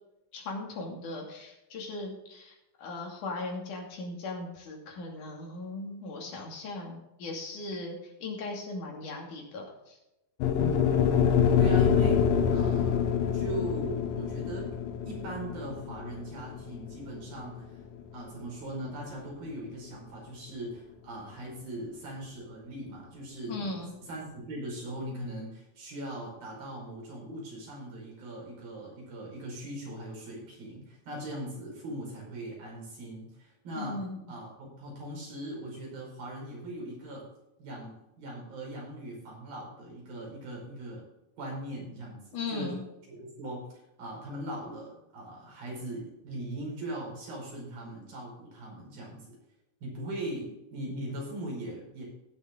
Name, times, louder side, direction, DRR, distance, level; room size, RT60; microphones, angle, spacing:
voice 1, 0.3-10.0 23.5-23.9 33.8-34.2 42.3-42.8, left 2 dB, 60° left, 0 dB, 4.0 m, -38 dB
sound 1, 10.4-18.6, left 7 dB, 80° left, 2.7 m, -26 dB
voice 2, 10.6-11.2 11.6-17.8 18.1-23.8 24.1-34.0 34.3-37.2 37.6-41.0 41.4-42.7 43.1-49.4 49.8-52.1, right 1 dB, 85° right, -3 dB, 7.1 m, -40 dB
17.5 x 7.4 x 3.9 m, 0.95 s
omnidirectional pair, 4.1 m